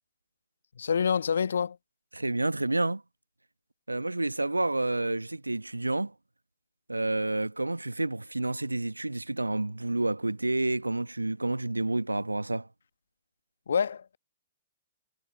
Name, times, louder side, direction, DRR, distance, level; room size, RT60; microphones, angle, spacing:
voice 1, 0.7-1.8 13.7-14.2, left 6 dB, 65° left, 1.4 m, -27 dB
voice 2, 2.1-3.0 3.9-6.1 6.9-12.7, right 2 dB, 85° right, 1.1 m, -29 dB
figure-of-eight pair, 115°, 0 cm